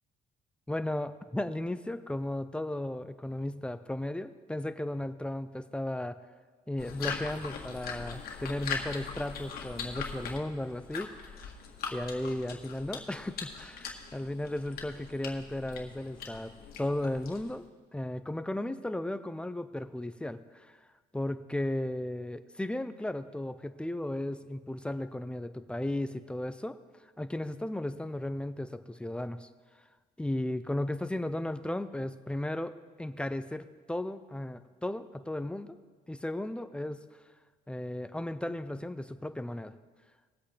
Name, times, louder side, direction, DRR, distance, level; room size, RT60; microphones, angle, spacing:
voice 1, 0.7-6.2 6.7-11.5 11.9-16.5 16.8-17.6 17.9-20.8 21.1-26.8 27.2-29.5 30.2-35.8 36.1-37.0 37.7-39.7, left 1 dB, 5° left, 11 dB, 0.6 m, -35 dB
sound 1, 6.8-17.6, left 5 dB, 65° left, 1.8 m, -41 dB
21.0 x 8.1 x 3.4 m, 1.4 s
cardioid pair, 110°, 17 cm